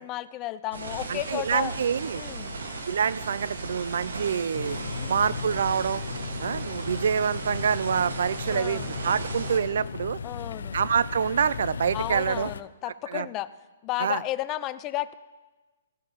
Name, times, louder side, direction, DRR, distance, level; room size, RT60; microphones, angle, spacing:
voice 1, 0.0-1.7 2.1-2.6 5.0-5.2 8.4-8.9 10.2-10.8 11.9-13.5 13.8-15.1, left 15 dB, 25° left, 15 dB, 0.4 m, -33 dB
sound 1, 0.7-9.6, right 3 dB, 90° right, 1.7 m, -36 dB
voice 2, 1.1-2.2 2.9-4.8 5.1-6.0 6.4-10.2 10.7-12.5 13.1-13.3 14.0-14.2, right 7 dB, 70° right, 20 dB, 0.4 m, -26 dB
sound 2, 4.5-12.6, left 6 dB, 85° left, 0.4 m, -36 dB
Bowed string instrument, 5.9-10.7, left 1 dB, 45° right, 3.8 m, -43 dB
15.0 x 14.0 x 3.0 m, 1.3 s
hypercardioid pair, 155°, 0 cm